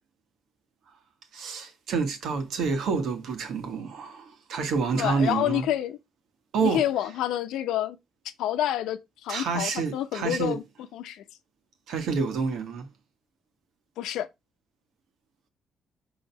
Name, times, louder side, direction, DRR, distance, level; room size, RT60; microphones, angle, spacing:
voice 1, 1.3-5.6 6.5-6.8 9.3-10.6 11.9-12.9, right 5 dB, 75° right, 1.8 m, -28 dB
voice 2, 5.0-6.0 6.6-8.0 8.4-10.6 10.9-11.2 14.0-14.3, left 12 dB, 90° left, 0.8 m, -28 dB
5.6 x 3.8 x 5.7 m
cardioid pair, 90°, 0 cm